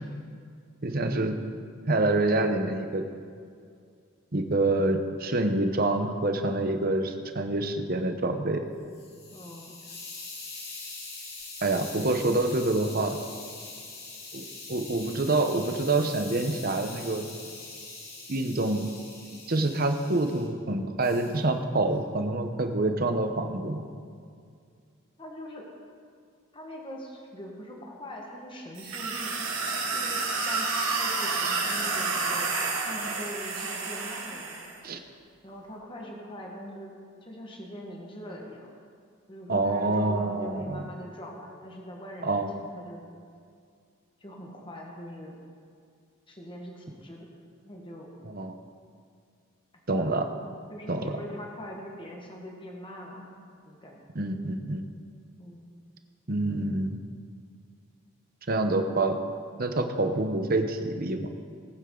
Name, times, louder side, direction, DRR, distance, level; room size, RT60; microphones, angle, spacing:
voice 1, 0.8-1.3 1.9-3.0 4.3-8.6 11.6-13.2 14.3-17.3 18.3-18.9 19.5-23.9 34.8-35.0 39.5-40.9 42.2-42.5 48.2-48.6 49.9-50.3 50.9-51.1 54.1-54.9 56.3-57.0 58.5-59.2 59.6-61.3, right 2 dB, 45° right, 6 dB, 0.9 m, -27 dB
Hiss, 8.7-20.5 21.0-21.4, left 3 dB, 50° left, 2.6 m, -43 dB
voice 2, 9.3-9.7 25.2-25.6 26.5-29.3 29.9-34.7 35.4-36.9 37.2-38.7 39.3-43.0 44.2-45.4 46.3-47.3 47.6-48.1 50.7-54.0 55.4-55.6, equal, 25° left, -1 dB, 1.5 m, -42 dB
sound 1, 28.8-34.7, right 3 dB, 85° right, 2.3 m, -30 dB
19.5 x 9.0 x 3.9 m, 2.2 s
head